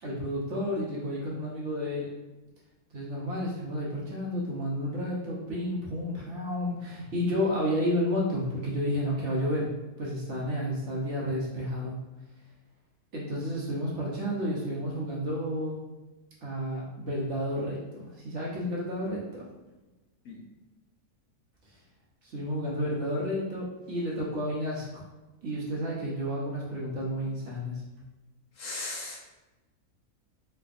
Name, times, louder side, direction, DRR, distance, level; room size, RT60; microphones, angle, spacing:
voice 1, 0.0-2.1 2.9-9.7 10.0-12.0 13.1-15.8 16.4-19.4 22.2-25.0 25.4-27.8, equal, 55° right, -5 dB, 1.1 m, -31 dB
voice 2, 28.6-29.2, left 2 dB, 65° left, -3 dB, 1.0 m, -37 dB
3.7 x 3.3 x 2.5 m, 1.1 s
omnidirectional pair, 1.6 m